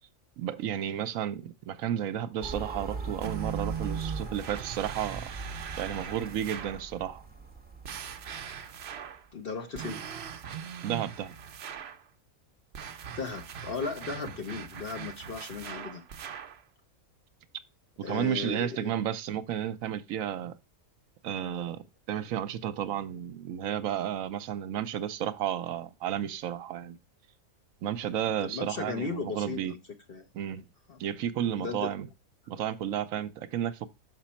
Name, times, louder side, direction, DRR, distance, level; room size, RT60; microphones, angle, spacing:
voice 1, 0.4-5.3 5.8-7.2 10.8-11.3 18.1-20.6 21.2-27.0 27.8-29.7 30.3-30.6 31.0-32.1 32.5-33.9, right 10 dB, 75° right, 1.0 m, -32 dB
sound 1, 2.4-8.9, right 4 dB, 10° right, 0.8 m, -40 dB
sound 2, 3.2-6.9 7.8-9.3 9.7-12.0 12.7-16.6, right 8 dB, 60° right, 0.8 m, -40 dB
voice 2, 9.3-10.0 13.2-16.0 18.0-18.9 28.4-29.6 30.1-30.2 30.9-31.0 31.6-31.9, left 4 dB, 50° left, 1.0 m, -36 dB
6.2 x 6.1 x 4.3 m
omnidirectional pair, 1.5 m